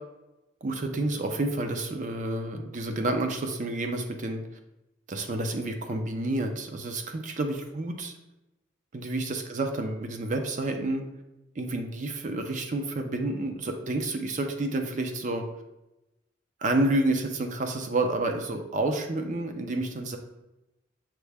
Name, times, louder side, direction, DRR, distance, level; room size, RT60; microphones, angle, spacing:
voice 1, 0.6-4.4 5.1-8.2 8.9-11.0 11.6-15.4 16.6-20.2, right 2 dB, 40° right, 5 dB, 0.5 m, -29 dB
5.8 x 2.1 x 3.3 m, 0.95 s
head